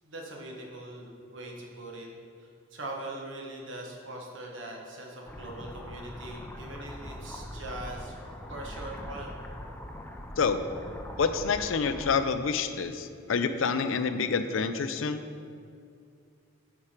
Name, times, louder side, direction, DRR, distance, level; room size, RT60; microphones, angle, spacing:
voice 1, 0.0-2.1 2.7-8.1 8.5-9.4, right 1 dB, 70° right, 0 dB, 1.3 m, -41 dB
sound 1, 5.3-12.1, left 1 dB, 10° left, 0.5 m, -42 dB
voice 2, 11.2-15.2, left 5 dB, 80° left, 10 dB, 0.5 m, -27 dB
9.4 x 4.8 x 4.4 m, 2.4 s
head